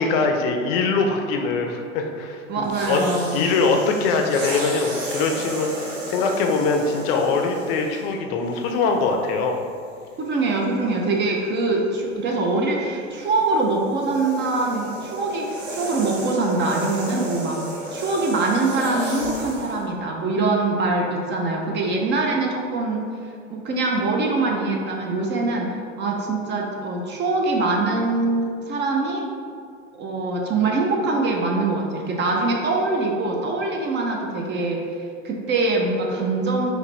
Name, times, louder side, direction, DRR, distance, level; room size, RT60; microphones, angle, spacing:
voice 1, 0.0-3.0 3.3-9.6, left 4 dB, 55° left, 3 dB, 0.5 m, -22 dB
voice 2, 2.5-3.5 10.2-23.0 23.5-29.2 29.9-34.8 35.2-36.7, right 3 dB, 30° right, 0 dB, 0.5 m, -23 dB
sound 1, 2.6-8.2 9.0-9.2 13.1-19.8, right 1 dB, 85° right, 0.8 m, -33 dB
4.7 x 2.2 x 3.1 m, 2.3 s
hypercardioid pair, 85°, 37 cm